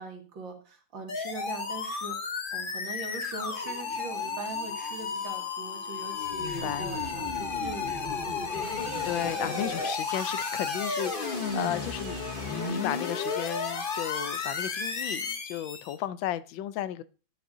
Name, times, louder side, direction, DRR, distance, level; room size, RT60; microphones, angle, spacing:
voice 1, 0.0-2.2 2.5-8.7, right 3 dB, 80° right, 2.5 m, -42 dB
sound 1, 1.1-16.0, left 4 dB, 40° left, 0.7 m, -33 dB
voice 2, 6.4-6.9 9.0-17.0, left 12 dB, 85° left, 1.3 m, -34 dB
Engine, 8.1-13.8, right 5 dB, 45° right, 1.1 m, -46 dB
10.5 x 9.3 x 2.6 m
omnidirectional pair, 2.0 m